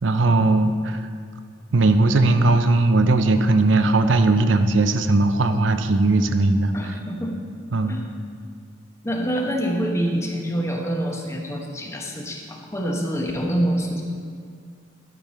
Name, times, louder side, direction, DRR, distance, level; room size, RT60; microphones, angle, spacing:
voice 1, 0.0-1.1 1.7-6.7 7.7-8.0, right 2 dB, 80° right, 9 dB, 0.6 m, -18 dB
voice 2, 6.7-7.3 7.9-8.0 9.0-14.0, equal, 15° left, 1 dB, 1.0 m, -26 dB
12.0 x 6.6 x 4.3 m, 2.1 s
head